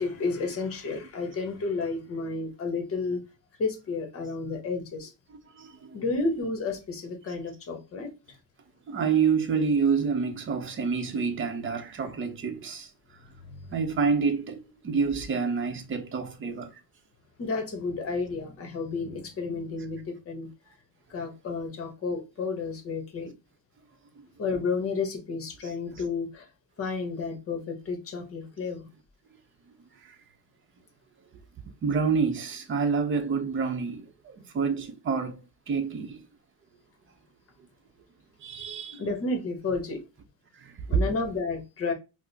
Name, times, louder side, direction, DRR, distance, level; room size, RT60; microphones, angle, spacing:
voice 1, 0.0-3.2 3.6-5.1 5.9-8.1 13.4-13.7 17.4-20.5 21.1-23.3 24.4-26.5 26.8-28.9 39.0-40.0 40.9-41.9, left 4 dB, 40° left, 1.0 m, -31 dB
voice 2, 5.5-6.0 8.9-12.9 13.7-16.8 25.6-25.7 30.0-30.2 31.8-36.3 38.4-39.0 40.5-41.0, right 5 dB, 35° right, 0.7 m, -28 dB
4.7 x 2.1 x 2.7 m
cardioid pair, 145°, 34 cm